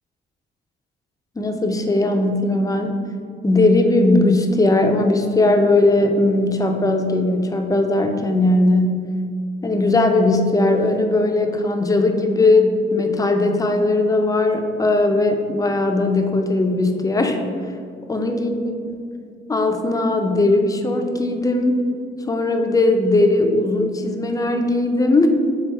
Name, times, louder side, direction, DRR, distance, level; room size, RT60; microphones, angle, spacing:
voice 1, 1.4-3.0 3.4-9.1 9.6-17.4 18.1-18.5 18.9-19.0 19.5-21.8 22.3-25.3, left 2 dB, 15° left, 5 dB, 0.4 m, -18 dB
3.4 x 3.3 x 4.4 m, 2.2 s
cardioid pair, 90°, 20 cm